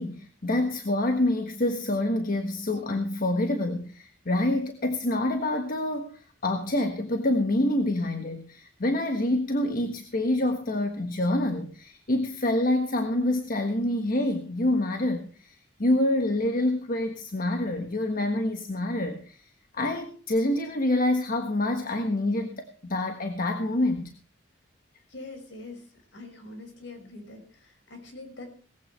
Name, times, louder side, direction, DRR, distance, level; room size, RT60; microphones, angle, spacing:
voice 1, 0.0-6.1 6.4-19.4 19.7-24.1, left 1 dB, 45° left, 5 dB, 1.5 m, -27 dB
voice 2, 25.1-25.9 26.1-28.5, left 2 dB, 65° left, 4 dB, 5.8 m, -43 dB
19.5 x 15.5 x 3.3 m, 0.40 s
head